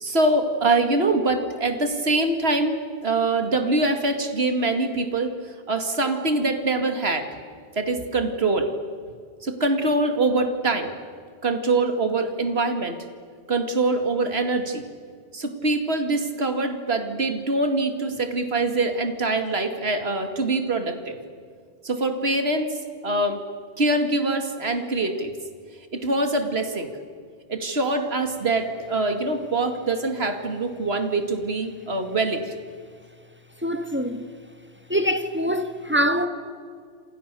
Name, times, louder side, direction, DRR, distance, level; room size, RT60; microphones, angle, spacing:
voice 1, 0.0-7.3 7.8-8.7 9.4-10.9 11.4-13.0 13.5-14.8 15.3-21.2 21.8-22.7 23.0-23.4 23.8-25.3 25.9-26.9 27.5-32.5, right 2 dB, 60° right, 2.6 m, -24 dB
voice 2, 33.6-34.3 34.9-36.3, equal, 10° right, 1.6 m, -24 dB
28.0 x 27.0 x 6.9 m
omnidirectional pair, 1.2 m